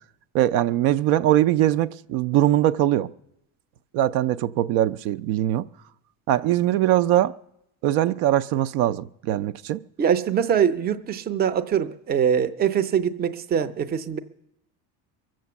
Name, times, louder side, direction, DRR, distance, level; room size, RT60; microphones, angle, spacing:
voice 1, 0.3-3.1 3.9-5.7 6.3-7.3 7.8-9.8, right 13 dB, 70° right, 0.5 m, -21 dB
voice 2, 10.0-14.2, right 8 dB, 25° right, 0.6 m, -23 dB
23.0 x 7.6 x 7.0 m
cardioid pair, 140°, 38 cm